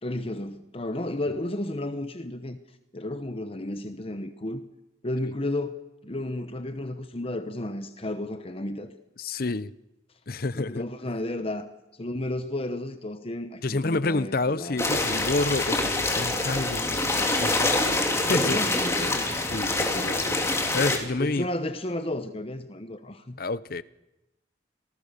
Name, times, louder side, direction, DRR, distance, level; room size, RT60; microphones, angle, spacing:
voice 1, 0.0-2.6 2.9-4.6 5.0-8.9 10.5-11.7 12.0-14.8 18.3-19.3 21.2-23.4, left 1 dB, 30° left, 1.0 m, -32 dB
voice 2, 9.2-9.7 10.3-10.8 13.6-17.5 17.8-18.6 19.5-21.5 23.4-23.8, left 3 dB, 55° left, 0.8 m, -29 dB
sound 1, 14.8-21.0, left 2 dB, 15° left, 3.1 m, -25 dB
27.0 x 19.0 x 6.8 m
head